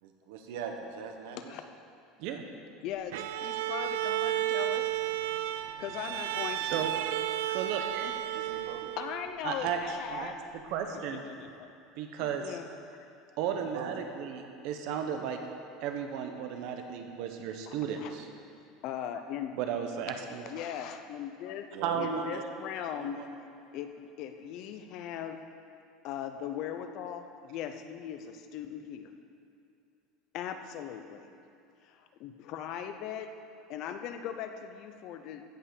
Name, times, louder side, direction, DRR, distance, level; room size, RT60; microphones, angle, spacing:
voice 1, 0.0-1.5 8.3-8.9 13.5-14.0 21.7-23.4, right 6 dB, 75° right, 4 dB, 1.4 m, -42 dB
voice 2, 2.8-4.9 5.8-6.8 7.5-7.6 8.0-8.1 9.0-10.3 11.1-11.7 12.2-12.7 17.7-18.1 18.8-19.6 20.5-23.2 23.7-25.4 26.0-29.1 30.3-31.3 31.8-33.3 33.7-35.4, left 9 dB, 40° left, 8 dB, 0.7 m, -39 dB
Bowed string instrument, 3.1-9.4, right 13 dB, 90° right, 0.4 m, -33 dB
voice 3, 7.5-8.1 9.4-9.8 10.1-10.3 10.6-11.2 12.0-12.6 13.4-15.4 15.8-18.3 19.5-20.5 21.8-22.1, right 8 dB, 50° right, 5 dB, 1.0 m, -34 dB
15.5 x 5.6 x 6.8 m, 2.6 s
cardioid pair, 175°, 0 cm